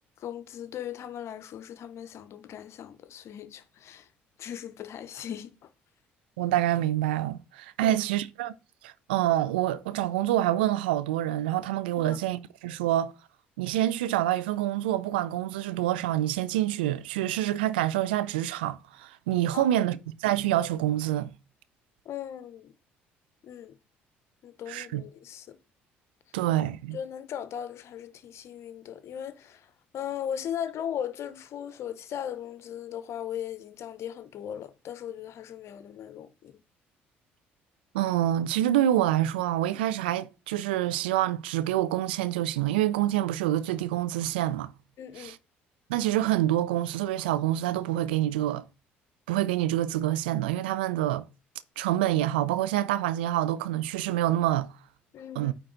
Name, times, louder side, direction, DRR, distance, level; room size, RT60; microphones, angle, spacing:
voice 1, 0.2-4.1 4.4-5.5 7.8-8.0 12.0-12.2 19.5-19.7 22.0-22.7 23.4-23.8 24.4-25.6 26.9-29.7 29.9-36.5 45.0-45.3 55.1-55.5, left 9 dB, 60° left, 0.8 m, -38 dB
voice 2, 6.4-8.5 8.8-13.1 13.6-20.0 20.2-21.3 24.7-25.0 26.3-27.0 37.9-44.7 45.2-45.4 45.9-48.6 49.3-51.2 51.8-54.7 55.4-55.5, right 13 dB, 85° right, 0.5 m, -27 dB
9.0 x 3.8 x 3.9 m
hypercardioid pair, 60°, 5 cm